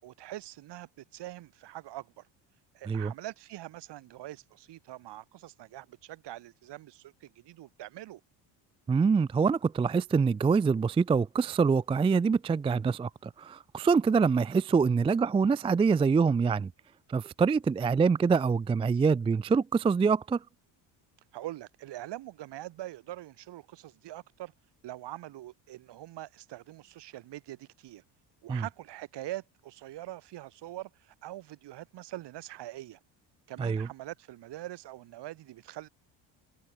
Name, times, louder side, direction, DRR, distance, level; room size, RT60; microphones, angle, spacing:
voice 1, 0.0-2.3 2.7-8.2 21.3-24.5 24.8-28.0 28.4-33.0 33.5-35.9, right 15 dB, 65° right, 4.5 m, -43 dB
voice 2, 8.9-13.1 13.4-16.7 17.1-20.4 28.5-28.6 33.6-33.9, right 5 dB, 15° right, 0.3 m, -25 dB
cardioid pair, 115°, 45 cm